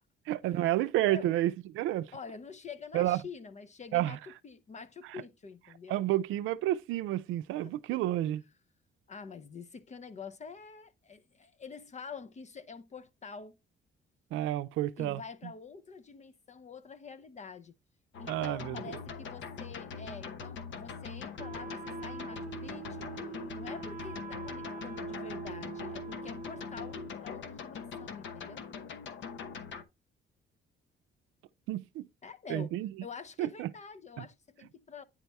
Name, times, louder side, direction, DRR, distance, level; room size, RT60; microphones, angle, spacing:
voice 1, 0.3-2.1 2.9-3.2 3.9-4.2 5.1-5.2 5.9-8.4 14.3-15.5 18.3-18.8 31.7-32.1 32.5-32.9 33.4-33.7 34.2-34.3, right 14 dB, 90° right, 0.5 m, -30 dB
voice 2, 1.0-1.3 2.1-4.2 4.4-6.1 7.6-8.0 9.1-13.6 15.0-17.7 18.2-23.1 23.5-28.6 32.2-32.7 33.0-35.0, left 5 dB, 35° left, 0.6 m, -47 dB
sound 1, 18.1-29.8, left 6 dB, 70° left, 0.9 m, -42 dB
Wind instrument woodwind instrument, 21.4-27.3, right 5 dB, 40° right, 0.9 m, -43 dB
9.5 x 3.4 x 4.1 m
cardioid pair, 90°, 20 cm